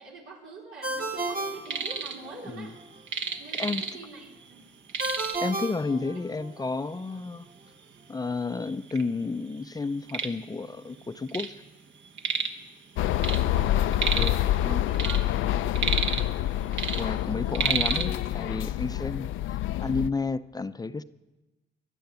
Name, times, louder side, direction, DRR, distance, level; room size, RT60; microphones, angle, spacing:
voice 1, 0.0-2.8 3.4-4.7 6.0-6.1 13.0-13.9 14.2-16.0, right 4 dB, 90° right, -2 dB, 4.0 m, -45 dB
Ringtone, 0.8-2.5 5.0-6.7, right 2 dB, 50° right, 2.0 m, -33 dB
sound 1, 1.4-2.2 2.5-4.2 4.5-4.6 4.9-5.5 6.3-6.4 7.0-7.1 7.8-7.9 8.2-9.0 9.5-11.6 11.8-12.6 12.9-14.5 14.8-16.4 16.7-18.1, right 5 dB, 70° right, 1.5 m, -31 dB
voice 2, 5.4-7.5 8.1-11.5 14.1-14.4 14.6-14.8 16.9-21.0, left 4 dB, 20° left, 12 dB, 0.5 m, -31 dB
sound 2, 13.0-20.1, left 13 dB, 80° left, 0.5 m, -27 dB
22.5 x 9.1 x 7.0 m, 1.1 s
cardioid pair, 90°, 20 cm